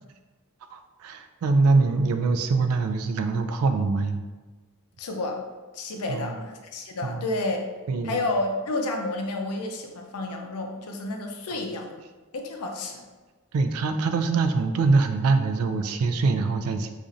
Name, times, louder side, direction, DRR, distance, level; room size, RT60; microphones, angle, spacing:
voice 1, 0.7-4.2 6.1-6.4 7.0-7.2 7.9-8.3 13.5-16.9, right 3 dB, 75° right, 7 dB, 0.3 m, -24 dB
voice 2, 5.0-5.4 5.7-7.6 8.0-12.0 12.3-13.1, left 2 dB, 90° left, 3 dB, 0.5 m, -30 dB
2.5 x 2.5 x 4.1 m, 1.3 s
head